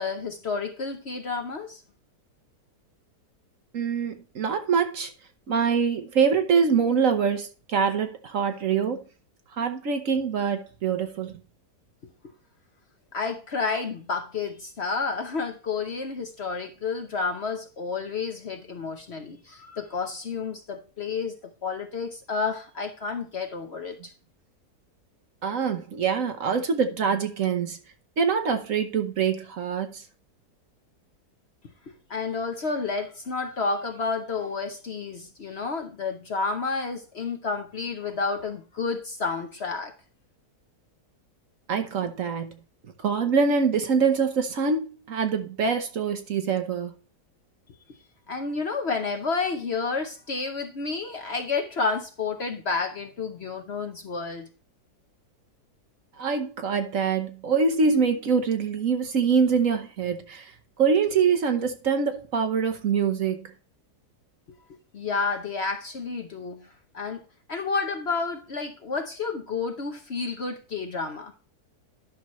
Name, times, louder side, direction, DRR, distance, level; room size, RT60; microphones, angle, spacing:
voice 1, 0.0-1.8 13.1-24.1 31.9-39.9 48.3-54.5 64.5-64.6 64.9-67.2 67.5-71.3, left 4 dB, 50° left, 0.9 m, -30 dB
voice 2, 3.7-5.1 5.5-9.0 9.6-11.4 25.4-27.8 28.2-30.0 41.7-42.6 43.0-46.9 56.2-60.5 60.8-63.5, right 6 dB, 55° right, 1.2 m, -24 dB
11.0 x 6.0 x 3.1 m
omnidirectional pair, 1.7 m